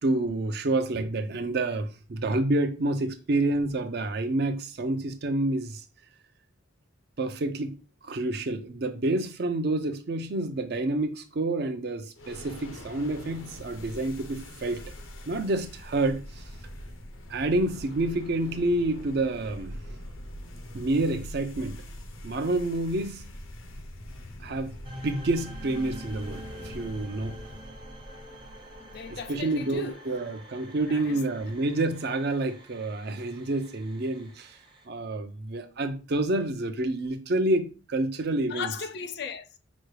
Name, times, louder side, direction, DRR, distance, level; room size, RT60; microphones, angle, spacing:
voice 1, 0.0-5.8 7.2-14.8 15.3-16.4 17.3-19.8 20.7-21.8 22.2-23.2 24.4-24.7 25.0-27.4 29.3-34.6 34.9-38.7, right 2 dB, 55° right, 0.5 m, -28 dB
sound 1, 12.2-29.5, left 1 dB, 85° left, 0.7 m, -43 dB
sound 2, 24.8-34.9, right 1 dB, 25° right, 0.7 m, -46 dB
voice 2, 28.8-30.0 30.9-31.2 38.5-39.6, left 6 dB, 55° left, 0.4 m, -37 dB
6.1 x 2.2 x 3.2 m
head